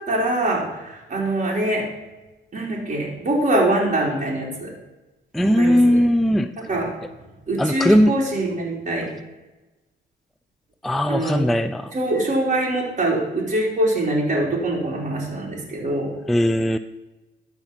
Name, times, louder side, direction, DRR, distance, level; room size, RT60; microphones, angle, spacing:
voice 1, 0.1-1.9 2.5-4.7 5.4-5.9 6.7-6.9 7.5-9.1 11.1-11.4 11.9-16.1, right 1 dB, 35° right, -3 dB, 3.0 m, -23 dB
voice 2, 5.3-6.5 7.6-8.1 10.8-11.9 16.3-16.8, equal, ahead, 11 dB, 0.3 m, -18 dB
12.5 x 4.5 x 5.8 m, 1.1 s
cardioid pair, 90°, 20 cm